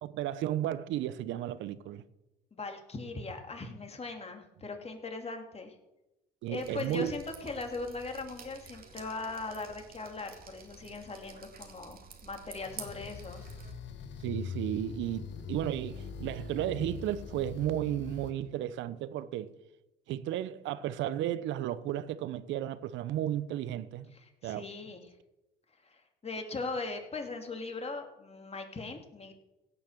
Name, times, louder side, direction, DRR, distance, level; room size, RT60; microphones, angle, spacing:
voice 1, 0.0-2.0 6.4-7.1 14.2-19.5 20.1-24.1 24.4-24.7, right 12 dB, 70° right, 0.8 m, -34 dB
voice 2, 2.5-5.7 6.5-13.4 24.1-25.1 25.8-29.3, left 3 dB, 30° left, 2.8 m, -39 dB
Drip, 6.6-13.7, right 5 dB, 50° right, 2.2 m, -50 dB
sound 1, 12.6-18.3, left 6 dB, 70° left, 1.5 m, -42 dB
16.5 x 5.9 x 7.5 m
supercardioid pair, 70°, 20 cm